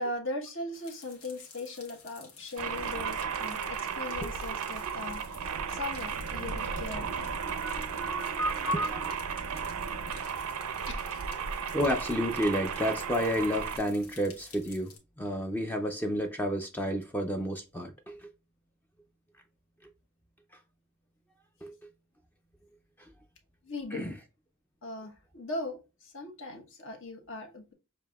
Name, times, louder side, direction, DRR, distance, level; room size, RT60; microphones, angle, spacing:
voice 1, 0.0-5.2 5.7-7.3 8.2-8.3 8.6-8.8 10.9-11.2 23.6-24.2 24.8-27.7, left 2 dB, 60° left, 1.1 m, -38 dB
sound 1, 0.7-15.0, left 5 dB, 80° left, 1.3 m, -53 dB
sound 2, 2.6-13.8, right 6 dB, 85° right, 0.5 m, -34 dB
voice 2, 7.5-9.0 11.7-18.2 21.6-21.7 23.9-24.1, equal, 10° left, 0.4 m, -31 dB
6.7 x 2.7 x 2.3 m
head